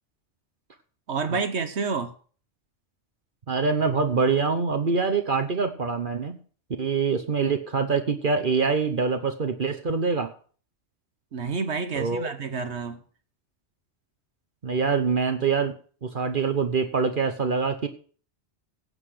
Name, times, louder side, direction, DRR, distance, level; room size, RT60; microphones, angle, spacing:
voice 1, 1.1-2.1 11.3-13.0, right 4 dB, 65° right, 1.3 m, -29 dB
voice 2, 3.5-6.4 6.8-10.3 12.0-12.3 14.6-15.7 16.0-17.9, right 5 dB, 45° right, 1.1 m, -25 dB
16.0 x 8.2 x 4.9 m
omnidirectional pair, 1.2 m